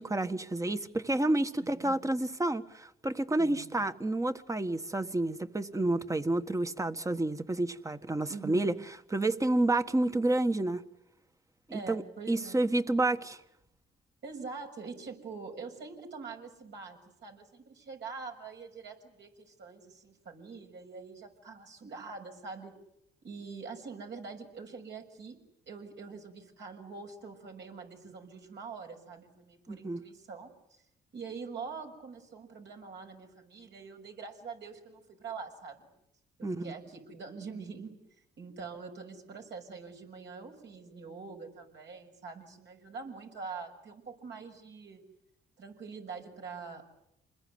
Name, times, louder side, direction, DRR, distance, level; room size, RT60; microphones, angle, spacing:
voice 1, 0.0-8.7 9.1-10.8 11.7-12.0 12.3-13.4 29.7-30.0 36.4-36.7, right 2 dB, 15° right, 1.5 m, -29 dB
voice 2, 8.3-8.7 11.7-12.6 14.2-22.8 23.2-25.4 25.7-30.5 31.1-35.9 36.4-38.0 38.4-45.0 45.6-46.9, right 5 dB, 65° right, 6.6 m, -44 dB
27.5 x 21.0 x 9.6 m
cardioid pair, 90°, 20 cm